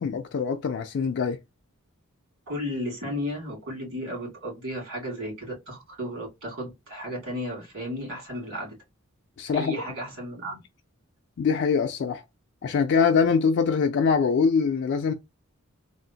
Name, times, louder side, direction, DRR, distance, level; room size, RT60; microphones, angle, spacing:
voice 1, 0.0-1.4 9.4-9.8 11.4-12.2 12.6-15.1, left 5 dB, 55° left, 0.3 m, -23 dB
voice 2, 2.5-8.8 9.5-10.6, equal, 70° right, 2.1 m, -34 dB
3.4 x 2.0 x 2.7 m
head